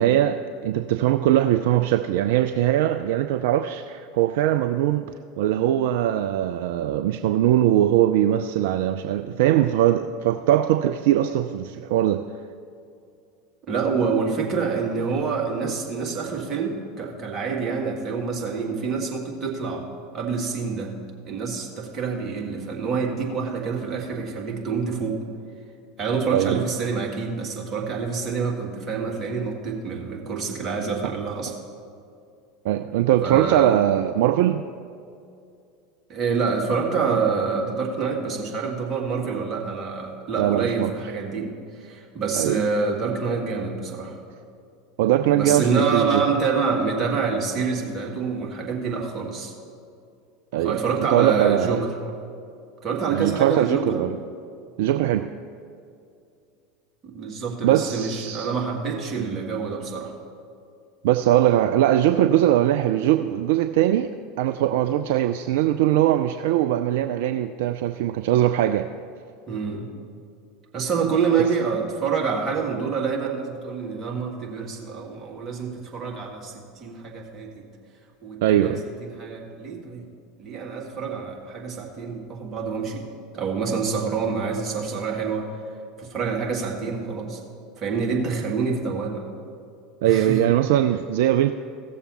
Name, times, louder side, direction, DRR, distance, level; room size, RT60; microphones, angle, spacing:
voice 1, 0.0-12.2 26.3-26.6 31.0-31.1 32.6-34.6 40.4-40.9 42.3-42.6 45.0-46.2 50.5-50.8 51.1-51.8 53.1-54.2 54.8-55.3 57.6-58.5 61.0-64.1 64.4-68.9 78.4-78.8 90.0-91.5, right 12 dB, 60° right, 9 dB, 0.3 m, -21 dB
voice 2, 13.7-19.9 20.1-20.9 21.3-25.2 26.0-31.5 33.2-33.8 36.1-44.2 45.3-49.5 50.6-51.9 52.8-54.1 57.0-60.1 69.5-69.9 70.7-77.7 78.2-78.7 79.0-80.1 80.4-83.1 83.3-85.5 86.0-87.4 87.8-89.2 90.1-90.4, right 5 dB, 30° right, -1 dB, 2.0 m, -27 dB
16.0 x 6.8 x 4.2 m, 2.4 s
figure-of-eight pair, 75°, 0 cm